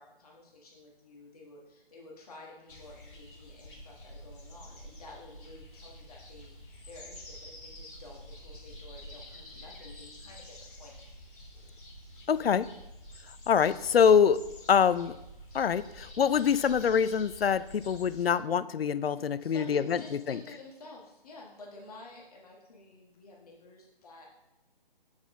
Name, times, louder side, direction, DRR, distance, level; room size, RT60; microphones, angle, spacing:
voice 1, 0.0-11.0 19.1-24.3, left 2 dB, 40° left, -2 dB, 1.4 m, -51 dB
sound 1, 2.7-18.3, left 1 dB, 70° left, 2.8 m, -48 dB
voice 2, 12.3-12.7 13.5-14.4 14.7-15.1 15.5-20.0 20.3-20.4, left 7 dB, 85° left, 15 dB, 0.5 m, -25 dB
7.3 x 6.4 x 3.6 m, 0.93 s
figure-of-eight pair, 155°, 29 cm